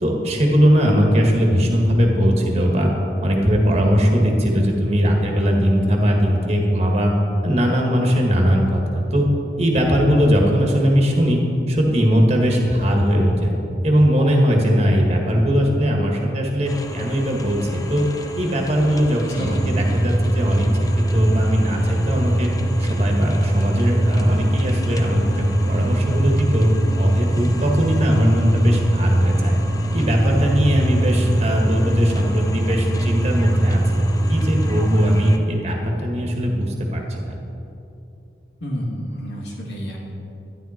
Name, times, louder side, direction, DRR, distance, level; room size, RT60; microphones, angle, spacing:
voice 1, 0.0-2.9 3.2-7.1 7.4-9.3 9.6-11.4 11.7-13.5 13.8-18.0 18.4-20.7 21.0-22.5 22.8-26.7 27.0-29.6 29.9-37.4, equal, 35° right, 0 dB, 1.8 m, -19 dB
sound 1, 16.6-35.4, left 2 dB, 20° left, 0.7 m, -36 dB
voice 2, 19.3-19.7 38.6-40.0, equal, 80° left, -3 dB, 2.6 m, -30 dB
sound 2, 19.4-35.5, right 1 dB, 20° right, 0.4 m, -21 dB
12.5 x 11.0 x 4.5 m, 2.8 s
head